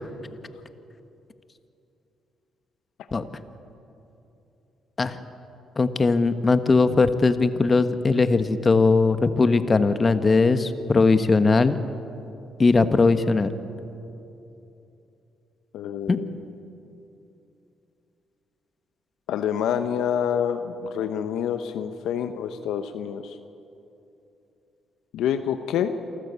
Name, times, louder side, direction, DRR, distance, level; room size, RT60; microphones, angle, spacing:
voice 1, 5.8-11.8 12.6-13.5 16.1-16.2, left 3 dB, 35° left, 10 dB, 1.4 m, -19 dB
voice 2, 15.7-16.3 19.3-23.4 25.1-25.9, left 8 dB, 75° left, 9 dB, 0.9 m, -27 dB
28.0 x 13.0 x 8.3 m, 2.8 s
hypercardioid pair, 50°, 0 cm